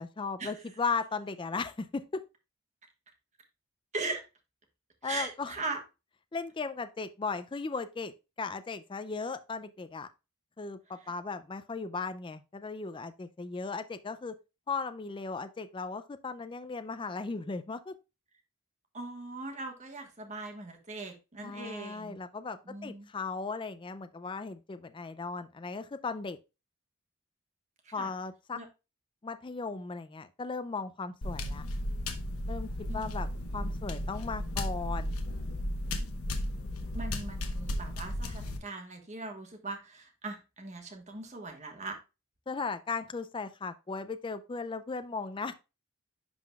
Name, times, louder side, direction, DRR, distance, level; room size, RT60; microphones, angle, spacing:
voice 1, 0.0-2.2 5.0-5.5 6.3-10.1 10.6-14.4 14.7-17.9 21.4-26.4 27.9-28.6 29.2-31.7 32.5-32.7 32.9-33.3 33.5-35.2 42.5-45.5, left 4 dB, 25° left, 0.3 m, -37 dB
voice 2, 5.0-5.8 18.9-22.2 22.6-23.1 27.8-28.1 28.5-28.7 32.9-33.1 36.9-42.0, right 3 dB, 35° right, 1.3 m, -40 dB
sound 1, 31.2-38.6, left 1 dB, 80° left, 1.0 m, -34 dB
11.0 x 3.8 x 2.3 m
head